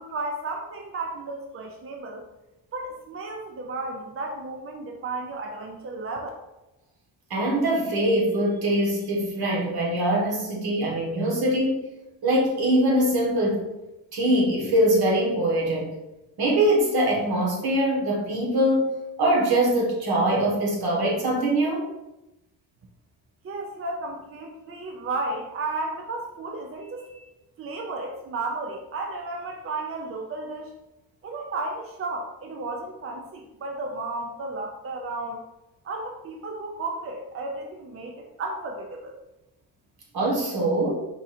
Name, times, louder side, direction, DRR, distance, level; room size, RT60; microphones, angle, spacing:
voice 1, 0.0-2.3 2.7-6.3 23.4-27.3 27.6-30.7 31.2-35.4 35.8-39.2, right 2 dB, 35° right, 2 dB, 0.5 m, -33 dB
voice 2, 7.3-11.8 12.2-13.6 14.1-15.9 16.4-18.9 19.2-21.9 40.1-40.9, right 1 dB, 70° right, -2 dB, 1.4 m, -23 dB
4.7 x 2.5 x 4.2 m, 0.98 s
cardioid pair, 110°, 38 cm